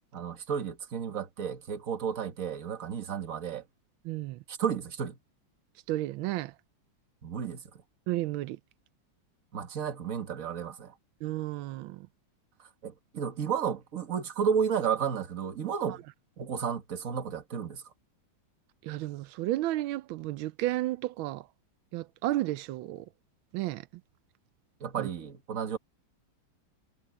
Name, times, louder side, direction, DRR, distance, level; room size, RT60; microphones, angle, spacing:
voice 1, 0.1-3.6 4.5-5.2 7.2-7.6 9.5-10.9 12.8-16.0 16.4-17.8 24.8-25.8, right 7 dB, 45° right, 1.8 m, -32 dB
voice 2, 4.0-4.4 5.9-6.5 8.1-8.6 11.2-12.1 15.9-16.0 18.8-21.5 21.9-23.1 23.5-23.9 25.0-25.1, right 16 dB, 85° right, 1.4 m, -32 dB
omnidirectional pair, 2.2 m